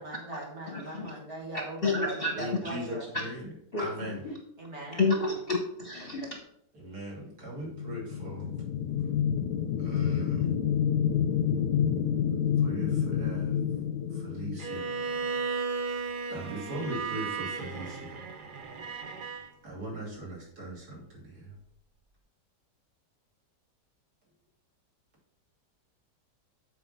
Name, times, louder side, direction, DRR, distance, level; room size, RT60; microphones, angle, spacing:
voice 1, 0.0-3.1 4.6-5.1, right 2 dB, 40° right, -1 dB, 2.1 m, -40 dB
voice 2, 0.7-1.1 1.8-2.3 3.7-4.1 5.0-6.4, left 3 dB, 45° left, 2 dB, 0.9 m, -29 dB
voice 3, 2.3-3.5 3.8-4.3 6.7-8.6 9.8-10.5 12.6-13.6 14.1-14.9 16.3-18.2 19.6-21.6, right 1 dB, 60° right, -3 dB, 3.2 m, -39 dB
sound 1, 7.6-15.3, left 8 dB, 70° left, 0.9 m, -28 dB
Bowed string instrument, 14.6-19.5, right 5 dB, 85° right, 0.4 m, -35 dB
7.7 x 4.4 x 5.4 m, 0.67 s
omnidirectional pair, 1.9 m